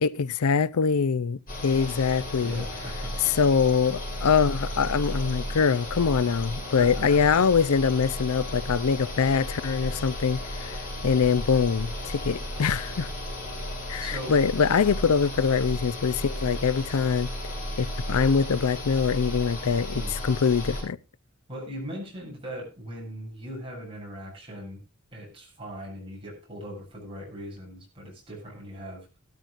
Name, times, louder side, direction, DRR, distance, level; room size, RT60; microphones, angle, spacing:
voice 1, 0.0-2.6 3.2-13.1 13.9-17.3 17.8-21.0, left 6 dB, 80° left, 0.5 m, -24 dB
sound 1, 1.5-20.8, equal, 40° left, 7.5 m, -34 dB
voice 2, 2.4-3.3 6.6-7.3 14.0-14.4 19.9-20.1 21.5-24.8 25.1-29.0, equal, 25° right, 7.7 m, -39 dB
16.5 x 13.5 x 2.5 m
head